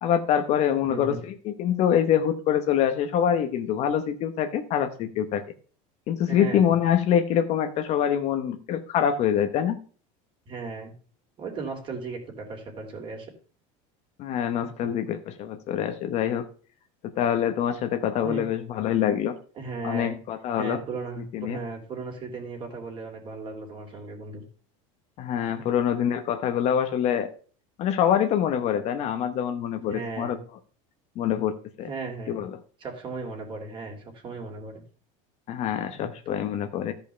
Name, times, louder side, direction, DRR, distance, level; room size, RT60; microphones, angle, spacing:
voice 1, 0.0-1.2 1.4-5.4 6.1-9.8 14.2-16.5 17.0-19.4 19.8-20.8 21.3-21.6 25.2-27.3 27.8-30.4 31.2-31.9 32.3-32.6 35.5-36.9, left 9 dB, 40° left, 8 dB, 1.0 m, -25 dB
voice 2, 0.9-1.2 6.3-6.7 10.5-10.9 11.4-13.3 14.8-14.9 18.2-18.4 19.5-20.1 20.6-24.4 29.8-30.4 31.8-32.4 32.8-34.8 36.0-36.1, right 4 dB, 30° right, 3 dB, 3.1 m, -36 dB
13.5 x 5.3 x 5.7 m, 0.41 s
cardioid pair, 155°, 16 cm